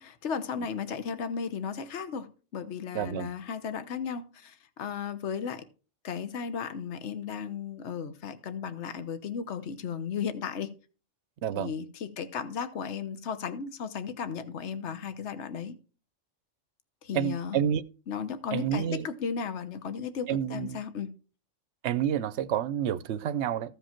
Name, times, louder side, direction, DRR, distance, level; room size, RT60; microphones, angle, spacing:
voice 1, 0.0-5.6 6.0-10.7 11.5-15.7 17.0-17.6 18.1-21.1, left 6 dB, 65° left, 1.2 m, -35 dB
voice 2, 2.9-3.3 11.4-11.7 17.1-17.8 18.5-19.1 20.3-20.8 21.8-23.8, right 9 dB, 65° right, 0.9 m, -29 dB
15.0 x 5.1 x 4.4 m
omnidirectional pair, 1.3 m